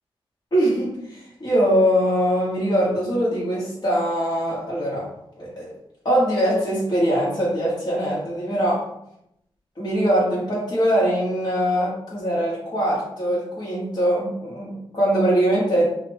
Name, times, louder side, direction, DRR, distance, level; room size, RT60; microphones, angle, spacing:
voice 1, 0.5-5.1 5.4-5.7 6.0-8.9 9.8-15.9, equal, 45° left, -7 dB, 1.5 m, -22 dB
5.5 x 2.5 x 3.1 m, 0.79 s
wide cardioid pair, 140°, 10 cm